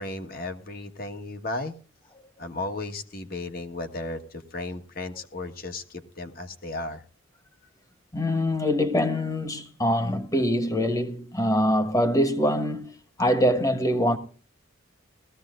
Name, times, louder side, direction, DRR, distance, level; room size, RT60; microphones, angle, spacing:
voice 1, 0.0-1.7 2.4-7.0, left 2 dB, 50° left, 1.4 m, -35 dB
voice 2, 8.1-12.9 13.2-14.2, equal, 15° left, 1.3 m, -24 dB
20.0 x 15.0 x 2.5 m
head